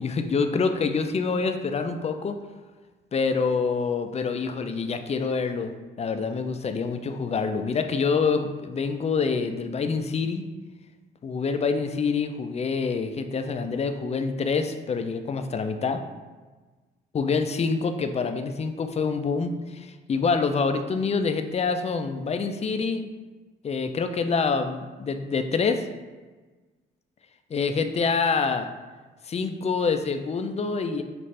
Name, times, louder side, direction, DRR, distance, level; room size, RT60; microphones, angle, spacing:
voice 1, 0.0-2.4 3.1-5.7 6.0-10.5 11.2-16.0 17.1-23.1 23.6-25.9 27.5-28.7 29.2-31.0, left 5 dB, 35° left, 7 dB, 0.4 m, -26 dB
5.5 x 2.5 x 3.2 m, 1.3 s
cardioid pair, 90°, 20 cm